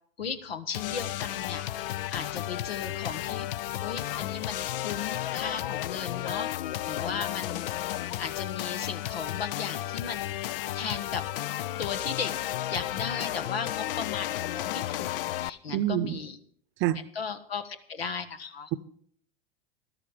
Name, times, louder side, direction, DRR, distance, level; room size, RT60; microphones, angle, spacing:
voice 1, 0.2-1.6 2.1-3.5 3.8-6.5 6.8-7.6 8.2-10.3 10.7-11.2 11.8-12.3 12.7-15.1 15.4-16.4 17.1-18.7, left 6 dB, 85° left, 1.5 m, -36 dB
sound 1, 0.7-15.5, left 13 dB, 65° left, 0.6 m, -33 dB
voice 2, 15.7-16.2 16.8-17.1, right 13 dB, 40° right, 0.8 m, -27 dB
13.0 x 12.5 x 5.1 m
hypercardioid pair, 100°, 30 cm